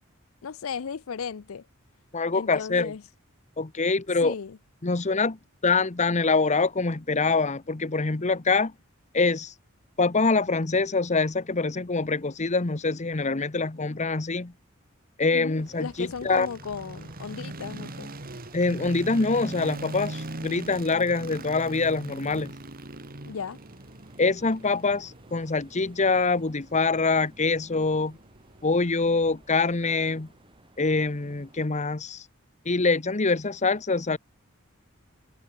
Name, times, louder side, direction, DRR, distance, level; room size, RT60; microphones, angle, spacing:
voice 1, 0.4-1.6 2.3-3.0 4.2-4.6 15.3-18.1 23.3-23.6, left 6 dB, 80° left, 0.5 m, -35 dB
voice 2, 2.1-2.9 3.6-4.3 4.8-5.4 5.6-8.7 9.1-9.5 10.0-14.5 15.2-16.5 18.5-22.5 24.2-28.2 28.6-30.3 30.8-32.2 32.6-34.2, left 3 dB, 35° left, 1.0 m, -25 dB
sound 1, 15.5-31.7, right 1 dB, 25° right, 5.9 m, -55 dB
sound 2, 15.6-29.7, right 1 dB, 45° right, 2.8 m, -41 dB
head